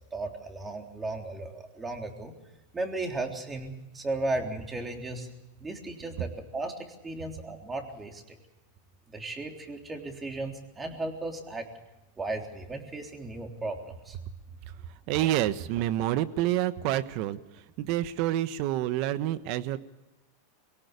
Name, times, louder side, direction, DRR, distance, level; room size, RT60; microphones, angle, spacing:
voice 1, 0.1-2.4 2.7-5.3 5.6-8.4 9.1-11.7 12.2-14.2, right 2 dB, 15° right, 3 dB, 3.5 m, -35 dB
voice 2, 14.6-19.8, right 13 dB, 55° right, 14 dB, 1.2 m, -28 dB
23.0 x 17.5 x 6.8 m, 1.0 s
supercardioid pair, 125°, 0 cm